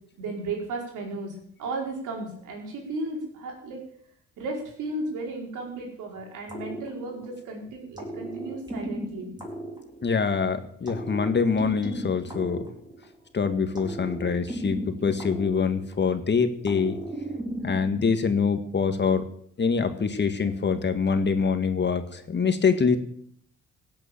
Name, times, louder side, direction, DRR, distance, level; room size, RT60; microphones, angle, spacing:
voice 1, 0.2-3.8 4.4-9.3, right 2 dB, 85° right, 1 dB, 4.9 m, -34 dB
sound 1, 6.5-7.5 7.9-10.4 10.8-13.3 13.7-16.2 16.6-18.1, right 1 dB, 15° right, 4.5 m, -36 dB
voice 2, 10.0-12.7 13.3-17.0 17.6-19.3 19.6-23.0, left 5 dB, 35° left, 9 dB, 1.7 m, -25 dB
16.5 x 8.7 x 7.2 m, 0.66 s
cardioid pair, 90°, 30 cm